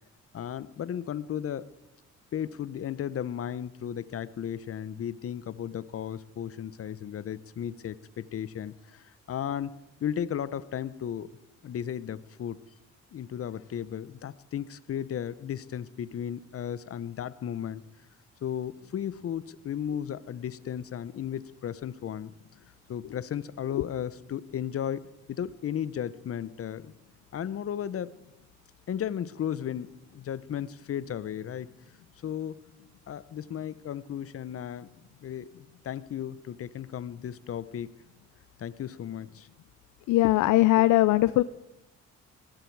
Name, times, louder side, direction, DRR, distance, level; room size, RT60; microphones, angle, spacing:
voice 1, 0.3-1.7 2.3-9.7 10.0-11.3 11.6-12.6 13.1-17.8 18.4-22.3 22.9-26.9 27.3-28.1 28.9-31.7 32.2-32.5 33.1-37.9 38.6-39.5, left 9 dB, 50° left, 17 dB, 0.8 m, -35 dB
voice 2, 40.1-41.4, left 16 dB, 80° left, 16 dB, 0.5 m, -20 dB
20.0 x 15.5 x 4.7 m, 0.94 s
cardioid pair, 90°, 30 cm